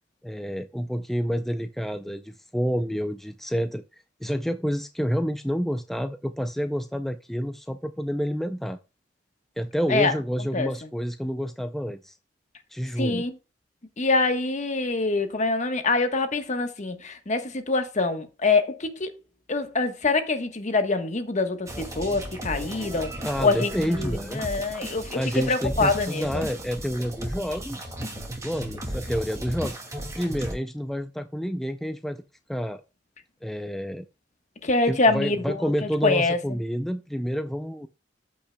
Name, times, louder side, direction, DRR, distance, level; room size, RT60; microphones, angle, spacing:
voice 1, 0.2-3.8 4.2-8.8 9.6-12.1 12.7-13.3 23.2-24.4 25.1-27.9 28.4-29.8 30.2-32.2 32.5-32.8 33.4-34.1 34.9-37.9, equal, ahead, 0.4 m, -29 dB
voice 2, 13.0-13.3 14.0-19.1 19.5-23.1 23.4-25.2 25.5-26.5 34.6-35.4 35.8-36.4, left 3 dB, 40° left, 1.2 m, -25 dB
sound 1, 21.7-30.5, equal, 15° right, 2.2 m, -35 dB
13.5 x 5.8 x 2.2 m
head